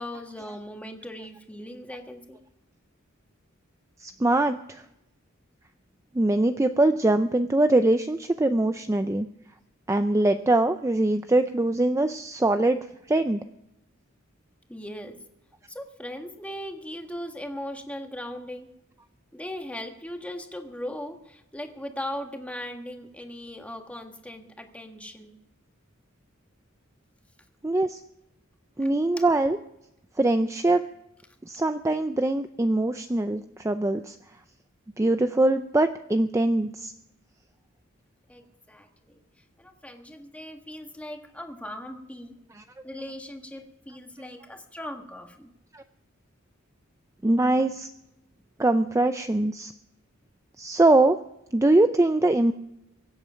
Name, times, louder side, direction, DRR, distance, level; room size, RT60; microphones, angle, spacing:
voice 1, 0.0-2.4 14.7-15.2 15.7-18.7 19.3-25.4 29.2-29.3 38.3-39.2 39.6-42.4 42.8-45.5, left 1 dB, 5° left, 4 dB, 1.6 m, -38 dB
voice 2, 4.0-4.8 6.1-9.3 9.9-13.4 27.6-28.0 28.8-29.6 30.2-30.8 31.4-34.2 35.0-36.9 42.5-42.6 45.7-45.8 47.2-47.9 48.6-49.7 50.6-51.2 51.5-52.5, right 2 dB, 15° right, 8 dB, 0.5 m, -22 dB
23.5 x 8.2 x 5.7 m, 0.84 s
head